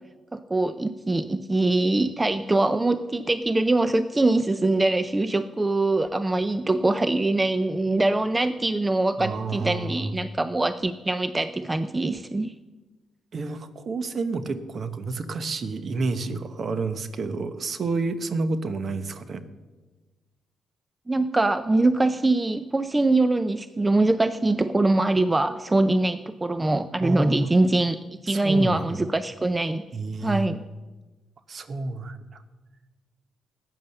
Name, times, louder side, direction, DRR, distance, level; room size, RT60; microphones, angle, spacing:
voice 1, 0.3-12.5 21.1-28.0 28.2-29.8 30.2-30.6, right 2 dB, 15° right, 12 dB, 0.5 m, -23 dB
voice 2, 9.2-10.1 13.3-19.4 27.0-27.5 28.3-29.0 29.9-30.5 31.5-32.4, right 3 dB, 45° right, 12 dB, 1.1 m, -29 dB
14.0 x 9.2 x 6.6 m, 1.2 s
cardioid pair, 90°, 0 cm